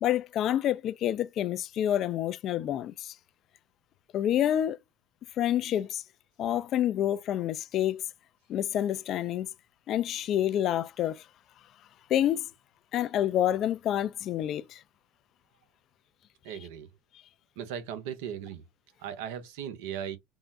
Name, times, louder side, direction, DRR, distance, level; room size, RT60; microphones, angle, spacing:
voice 1, 0.0-3.1 4.1-4.8 5.4-6.0 6.4-8.0 8.5-9.5 9.9-11.2 12.1-12.5 12.9-14.8, left 11 dB, 50° left, 0.4 m, -28 dB
voice 2, 16.4-16.9 17.6-18.6 19.0-20.2, right 9 dB, 70° right, 0.7 m, -37 dB
3.6 x 2.1 x 2.6 m
hypercardioid pair, 80°, 0 cm